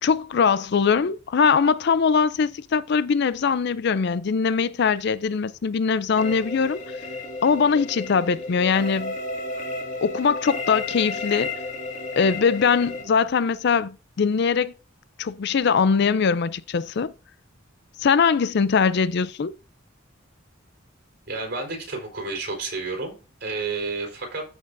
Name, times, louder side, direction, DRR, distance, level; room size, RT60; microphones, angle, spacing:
voice 1, 0.0-6.8 7.4-9.2 10.0-11.5 12.2-14.7 15.2-17.1 18.0-19.5, left 5 dB, 55° left, 0.4 m, -21 dB
sound 1, 6.2-13.0, left 2 dB, 40° left, 2.2 m, -33 dB
voice 2, 21.3-24.4, right 3 dB, 55° right, 4.2 m, -31 dB
13.5 x 6.1 x 2.6 m
head